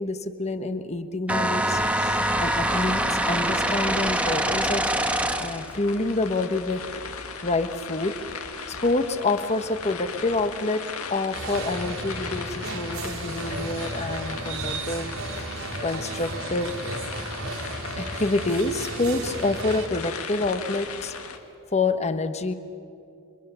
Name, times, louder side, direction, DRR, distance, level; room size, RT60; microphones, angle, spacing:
voice 1, 0.0-4.8 5.4-6.8 7.4-8.1 8.7-15.1 15.8-16.7 18.0-21.1 21.7-22.5, left 2 dB, 30° left, 9 dB, 1.0 m, -27 dB
sound 1, 1.3-5.7, right 1 dB, 5° right, 1.1 m, -24 dB
sound 2, 1.7-21.4, left 5 dB, 85° left, 1.9 m, -38 dB
sound 3, 11.3-19.9, right 2 dB, 80° right, 3.3 m, -34 dB
28.0 x 24.0 x 6.9 m, 2.6 s
head